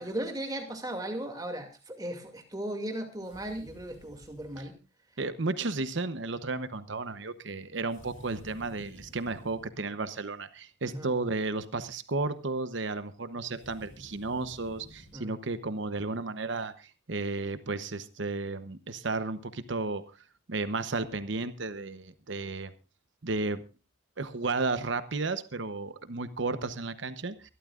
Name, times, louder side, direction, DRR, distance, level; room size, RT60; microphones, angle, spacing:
voice 1, 0.0-4.8 10.9-11.1 15.1-15.4, right 1 dB, 20° right, 4 dB, 2.4 m, -37 dB
sound 1, 3.2-4.7 7.9-9.7 13.5-15.2, left 1 dB, 70° left, 2.7 m, -52 dB
voice 2, 5.2-20.0 20.5-22.7 23.2-23.6 24.2-27.5, right 3 dB, 65° right, 11 dB, 0.9 m, -33 dB
24.0 x 12.5 x 2.5 m, 0.31 s
head